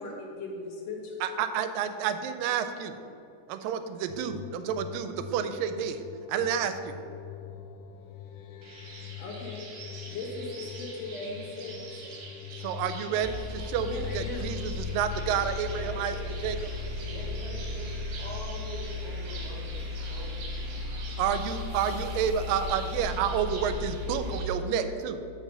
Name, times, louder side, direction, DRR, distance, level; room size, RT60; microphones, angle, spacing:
voice 1, 0.0-1.2 9.2-9.7 10.1-11.9 13.8-14.4 24.7-24.9, left 3 dB, 60° left, -2 dB, 1.9 m, -38 dB
voice 2, 1.2-2.9 3.5-6.0 6.3-6.9 12.5-16.2 16.4-16.7 21.2-25.2, right 8 dB, 90° right, 9 dB, 2.3 m, -30 dB
sound 1, 4.1-19.6, left 8 dB, 85° left, 2.3 m, -44 dB
sound 2, 8.6-24.5, right 3 dB, 65° right, 2.6 m, -46 dB
sound 3, 13.2-24.4, left 3 dB, 45° left, 1.0 m, -36 dB
voice 3, 15.6-16.4 16.9-20.9 21.9-23.2, right 1 dB, 45° right, -9 dB, 1.3 m, -44 dB
7.4 x 5.5 x 6.7 m, 2.6 s
omnidirectional pair, 3.9 m